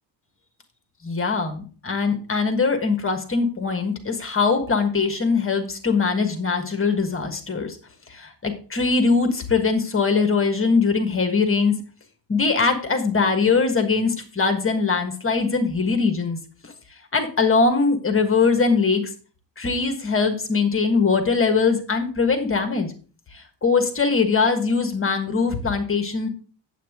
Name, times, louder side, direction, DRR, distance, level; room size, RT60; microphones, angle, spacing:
voice 1, 1.0-7.8 8.1-11.8 12.3-16.4 16.6-16.7 17.1-19.1 19.6-22.9 23.3-26.3, left 4 dB, 25° left, 7 dB, 1.4 m, -21 dB
8.4 x 8.0 x 3.6 m, 0.38 s
cardioid pair, 140°, 48 cm